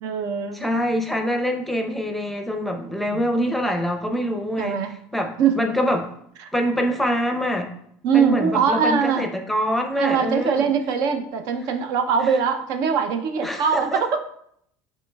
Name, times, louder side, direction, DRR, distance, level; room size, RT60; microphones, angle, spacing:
voice 1, 0.0-0.6 3.1-3.2 4.6-4.9 5.4-5.6 6.4-6.5 8.0-9.3 9.9-14.2, right 6 dB, 65° right, 7 dB, 0.5 m, -22 dB
voice 2, 0.5-4.8 5.1-6.1 6.5-7.7 8.1-10.7 13.4-14.0, equal, ahead, 3 dB, 0.6 m, -25 dB
7.4 x 3.1 x 2.2 m, 0.69 s
supercardioid pair, 105°, 7 cm